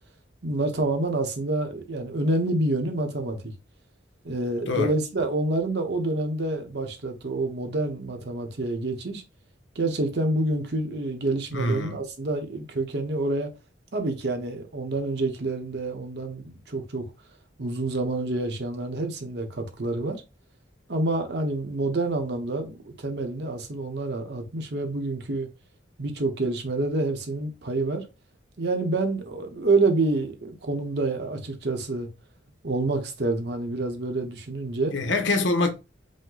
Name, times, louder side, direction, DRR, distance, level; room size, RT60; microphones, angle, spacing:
voice 1, 0.4-3.4 4.2-9.2 9.7-13.5 13.9-17.1 17.6-20.2 20.9-25.5 26.0-28.1 28.6-32.1 32.6-35.0, right 2 dB, 60° right, 0.9 m, -27 dB
voice 2, 11.5-12.0 34.9-35.7, left 2 dB, 85° left, 1.0 m, -24 dB
5.3 x 2.2 x 3.8 m
head